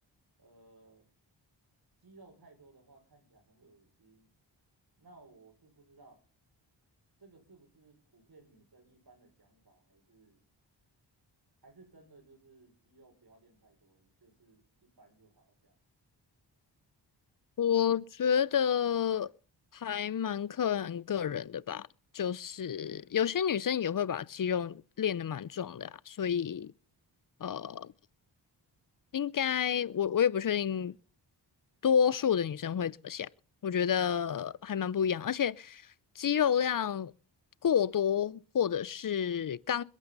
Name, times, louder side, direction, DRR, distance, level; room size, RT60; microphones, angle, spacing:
voice 1, 0.4-1.1 2.0-4.3 5.0-6.2 7.2-10.4 11.6-15.8 27.7-28.1, right 3 dB, 55° right, 6.1 m, -60 dB
voice 2, 17.6-19.3 19.7-21.9 22.1-26.7 27.4-27.9 29.1-31.0 31.8-33.3 33.6-35.8 36.2-37.1 37.6-39.8, left 8 dB, 45° left, 0.7 m, -30 dB
21.5 x 12.0 x 4.1 m
cardioid pair, 50°, 46 cm